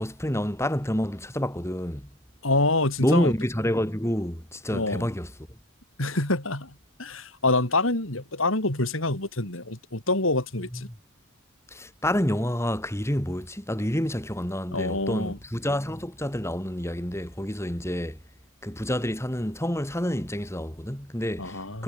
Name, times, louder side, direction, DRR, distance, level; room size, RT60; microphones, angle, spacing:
voice 1, 0.0-2.1 3.0-5.3 10.7-11.0 11.7-18.2 18.6-21.8, equal, 15° left, 4.3 m, -28 dB
voice 2, 2.4-3.3 4.7-5.1 6.0-6.7 7.0-10.9 14.7-15.4 21.4-21.8, left 2 dB, 80° left, 4.9 m, -26 dB
head